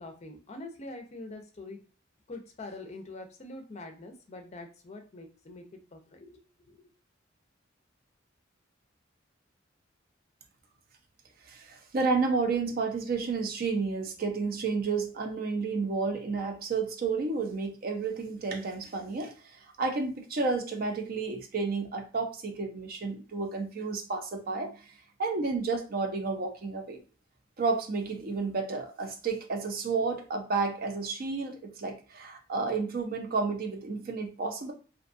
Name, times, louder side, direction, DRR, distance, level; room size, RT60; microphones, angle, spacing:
voice 1, 0.0-1.8 2.3-6.8, left 2 dB, 35° left, 4 dB, 0.5 m, -44 dB
voice 2, 11.5-24.8 25.2-27.0 27.6-34.7, right 4 dB, 50° right, 5 dB, 0.5 m, -31 dB
2.5 x 2.2 x 2.5 m, 0.36 s
head